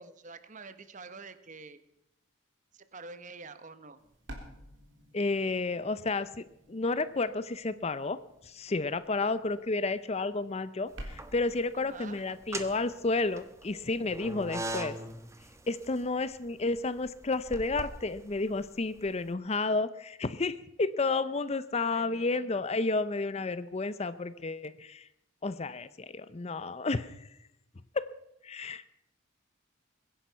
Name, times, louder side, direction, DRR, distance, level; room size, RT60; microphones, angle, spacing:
voice 1, 0.0-1.8 2.7-4.0 11.7-12.2 21.8-22.5, right 4 dB, 35° right, 12 dB, 0.9 m, -47 dB
bass guitar, 4.0-14.2, equal, 60° right, 3.5 m, -52 dB
voice 2, 5.1-8.2 8.4-15.0 15.7-25.1 25.4-27.3 27.9-28.1 28.4-28.8, left 3 dB, 30° left, 15 dB, 0.5 m, -31 dB
sound 1, 10.9-11.6 12.3-19.2, right 1 dB, 15° right, 1.0 m, -41 dB
22.5 x 10.5 x 5.7 m, 0.85 s
head